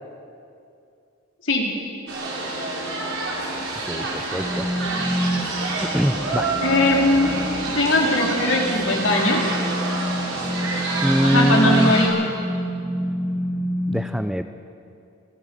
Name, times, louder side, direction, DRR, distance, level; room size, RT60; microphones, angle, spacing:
sound 1, 2.1-12.1, right 2 dB, 75° right, 5.4 m, -28 dB
voice 1, 3.9-4.7 5.8-6.5 11.0-11.9 13.9-14.4, equal, ahead, 9 dB, 0.5 m, -22 dB
sound 2, 4.3-13.9, equal, 25° right, 7.9 m, -28 dB
voice 2, 6.6-7.4 7.7-9.4 11.2-12.2, left 1 dB, 65° left, -1 dB, 3.9 m, -19 dB
27.0 x 16.0 x 7.1 m, 2.6 s
head